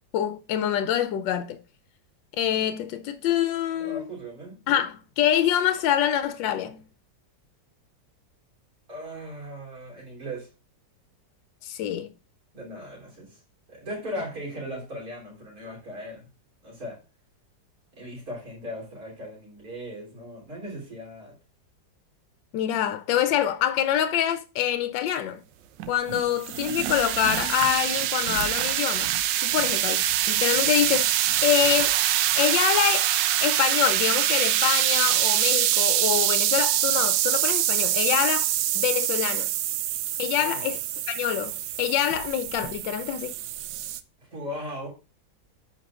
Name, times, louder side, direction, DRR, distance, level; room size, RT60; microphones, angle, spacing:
voice 1, 0.1-1.6 2.4-4.0 4.7-6.8 11.6-12.1 22.5-25.4 25.9-29.1 29.4-31.1 31.4-32.0 32.4-33.1 33.4-39.5 40.2-40.8 41.1-43.4, left 10 dB, 80° left, 1.3 m, -25 dB
voice 2, 3.7-4.6 8.9-10.5 12.5-13.4 13.7-16.3 16.6-17.0 17.9-21.3 40.4-40.7 44.2-44.9, equal, 50° right, 3.7 m, -38 dB
sound 1, 25.8-44.0, right 12 dB, 75° right, 1.2 m, -25 dB
13.5 x 5.2 x 2.4 m
omnidirectional pair, 2.0 m